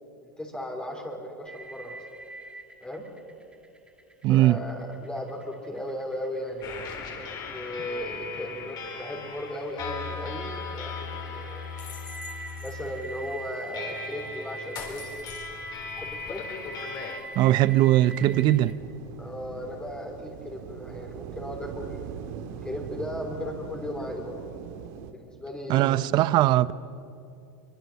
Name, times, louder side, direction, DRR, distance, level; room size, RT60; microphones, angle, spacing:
voice 1, 0.2-2.0 2.8-3.0 4.3-6.7 7.5-11.7 12.6-15.0 15.9-16.4 19.2-22.1 22.6-24.4 25.1-26.0, left 1 dB, 10° left, 3.2 m, -36 dB
sound 1, 1.5-18.7, right 3 dB, 10° right, 2.0 m, -44 dB
voice 2, 4.2-4.6 17.3-18.8 25.7-26.7, right 15 dB, 45° right, 0.7 m, -20 dB
sound 2, 6.6-17.2, left 5 dB, 40° left, 4.1 m, -38 dB
sound 3, 18.2-25.1, right 8 dB, 65° right, 2.1 m, -41 dB
23.5 x 22.5 x 7.0 m
supercardioid pair, 115°, 10 cm